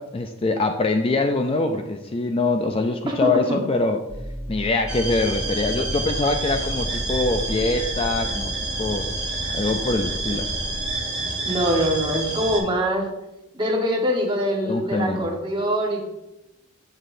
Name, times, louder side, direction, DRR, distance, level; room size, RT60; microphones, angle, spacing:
voice 1, 0.0-4.0 4.5-9.1 9.5-10.5 14.6-15.3, left 3 dB, 25° left, 5 dB, 0.4 m, -24 dB
voice 2, 3.1-3.6 11.4-13.0 13.5-16.1, equal, 25° right, 0 dB, 1.2 m, -23 dB
sound 1, 4.1-10.9, right 1 dB, 60° right, 1.2 m, -34 dB
sound 2, 4.9-12.6, right 2 dB, 5° right, 2.3 m, -29 dB
9.0 x 6.3 x 2.6 m, 0.93 s
head